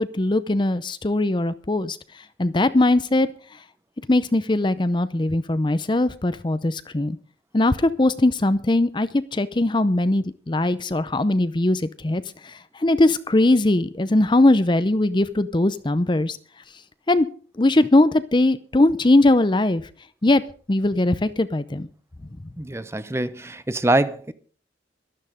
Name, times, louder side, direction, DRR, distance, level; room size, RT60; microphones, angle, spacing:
voice 1, 0.0-2.0 2.4-3.3 4.1-7.2 7.5-16.4 17.1-17.3 17.6-19.8 20.2-20.4 20.7-21.9, left 2 dB, 25° left, 0.6 m, -20 dB
voice 2, 22.6-24.3, right 2 dB, 15° right, 0.7 m, -24 dB
12.5 x 12.0 x 5.1 m
head